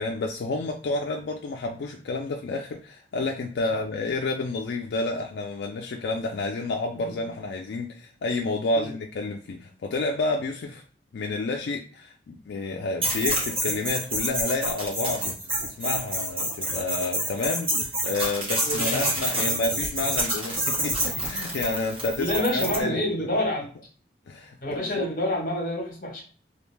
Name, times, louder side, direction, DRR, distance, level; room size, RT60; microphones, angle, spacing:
voice 1, 0.0-10.8 11.1-23.4 24.3-25.1, left 3 dB, 85° left, 1 dB, 0.4 m, -30 dB
sound 1, 13.0-22.8, right 1 dB, 30° right, 1.1 m, -28 dB
voice 2, 18.6-19.1 22.2-23.7 24.6-26.2, left 1 dB, 50° left, 0 dB, 1.1 m, -28 dB
2.4 x 2.1 x 3.2 m, 0.42 s
head